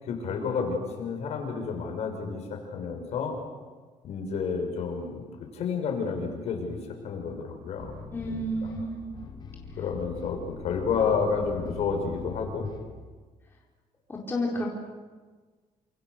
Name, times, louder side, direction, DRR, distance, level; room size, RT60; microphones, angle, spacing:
voice 1, 0.0-3.4 4.0-5.2 5.5-7.9 8.3-8.4 9.8-12.7, left 5 dB, 55° left, 3 dB, 6.2 m, -30 dB
sound 1, 7.8-12.9, left 5 dB, 35° left, 3.5 m, -42 dB
voice 2, 8.1-9.1 14.1-14.7, equal, 15° left, -3 dB, 4.2 m, -31 dB
29.0 x 27.5 x 6.6 m, 1.4 s
cardioid pair, 175°, 13 cm